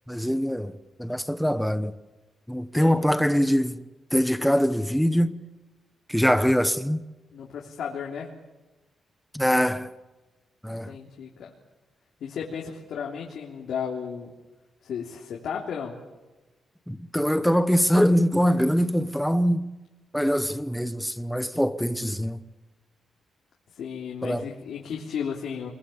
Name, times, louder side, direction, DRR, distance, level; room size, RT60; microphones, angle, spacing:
voice 1, 0.1-0.7 1.0-1.9 2.5-3.8 4.1-5.4 6.1-7.0 9.3-9.9 10.6-10.9 16.9-19.6 20.1-22.4 24.2-24.4, equal, ahead, 1.0 m, -23 dB
voice 2, 2.7-3.1 7.3-8.3 10.8-11.5 12.2-14.3 14.8-15.9 23.7-25.7, left 7 dB, 80° left, 3.3 m, -34 dB
27.5 x 21.5 x 7.2 m
wide cardioid pair, 135°, 0 cm